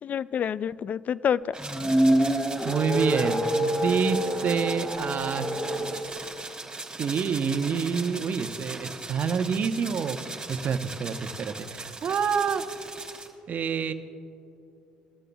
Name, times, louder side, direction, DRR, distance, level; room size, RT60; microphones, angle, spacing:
voice 1, 0.0-1.5, left 8 dB, 45° left, 19 dB, 0.3 m, -28 dB
sound 1, 1.5-13.3, right 3 dB, 20° right, 3.4 m, -39 dB
sound 2, 1.6-6.0, right 1 dB, 20° left, 3.2 m, -26 dB
voice 2, 2.2-5.5 7.0-12.8 13.5-13.9, right 6 dB, 50° right, 9 dB, 0.9 m, -28 dB
21.5 x 13.0 x 2.3 m, 2.8 s
hypercardioid pair, 60°, 4 cm